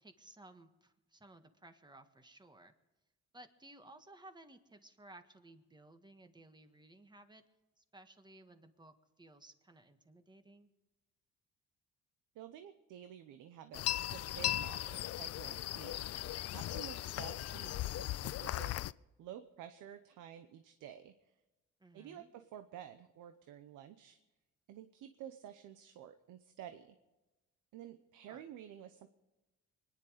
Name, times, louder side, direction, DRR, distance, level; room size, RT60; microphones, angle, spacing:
voice 1, 0.0-2.7 3.3-7.4 7.8-10.7 21.8-22.3 28.3-28.4, right 2 dB, 15° right, 8 dB, 1.5 m, -58 dB
voice 2, 12.3-16.3 16.5-18.7 19.2-21.1 21.9-24.2 24.7-27.0 27.7-29.1, right 10 dB, 90° right, 9 dB, 0.9 m, -51 dB
sound 1, 13.7-18.9, left 13 dB, 55° left, 0.4 m, -38 dB
23.5 x 10.5 x 5.0 m, 1.1 s
cardioid pair, 90°, 30 cm